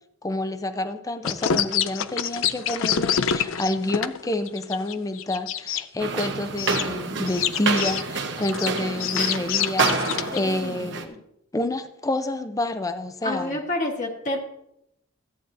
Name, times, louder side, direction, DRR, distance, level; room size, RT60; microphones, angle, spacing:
voice 1, 0.2-11.1 11.5-13.6, left 1 dB, 15° left, 10 dB, 0.5 m, -28 dB
sound 1, 1.2-5.8 6.6-6.8 7.3-10.4, left 8 dB, 90° left, 0.5 m, -26 dB
sound 2, 6.0-11.1, right 4 dB, 65° right, 1.0 m, -28 dB
voice 2, 10.3-11.2 13.2-14.4, left 1 dB, 40° left, 0 dB, 1.3 m, -29 dB
14.0 x 8.9 x 2.6 m, 0.80 s
head